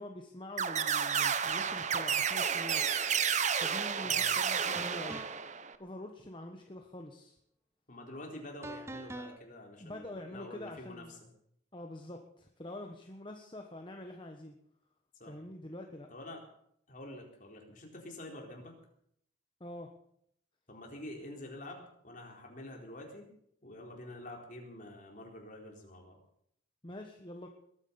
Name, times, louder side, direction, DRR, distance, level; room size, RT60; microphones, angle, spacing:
voice 1, 0.0-2.8 3.5-5.2 5.8-7.4 9.8-11.1 11.7-14.5 15.3-16.1 19.6-19.9 26.8-27.5, left 1 dB, 25° left, 3 dB, 1.4 m, -45 dB
sound 1, 0.6-5.7, right 7 dB, 40° right, 0.9 m, -31 dB
voice 2, 4.0-4.3 7.9-11.0 15.2-15.3 16.1-16.4 16.9-18.7 20.7-23.3 23.6-26.2, left 1 dB, 45° left, 1 dB, 4.2 m, -47 dB
sound 2, 4.7-5.6 8.6-9.4, right 1 dB, 15° right, 0.7 m, -44 dB
21.0 x 9.7 x 7.0 m, 0.70 s
head